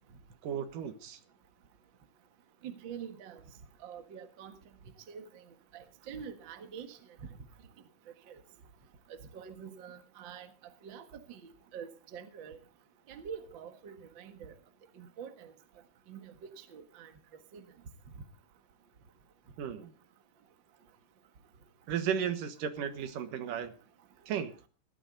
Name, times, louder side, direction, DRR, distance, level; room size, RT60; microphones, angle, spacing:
voice 1, 0.4-1.2 19.6-19.9 21.9-23.7 24.3-24.5, right 8 dB, 75° right, 10 dB, 2.9 m, -34 dB
voice 2, 2.6-3.4 3.8-4.6 5.1-5.4 5.7-7.0 8.3-8.4 9.1-10.5 10.8-12.6 13.1-14.5 15.0-15.5 16.1-17.1 17.5-17.6, right 7 dB, 45° right, 8 dB, 1.8 m, -46 dB
17.5 x 13.0 x 3.9 m, 0.33 s
omnidirectional pair, 3.9 m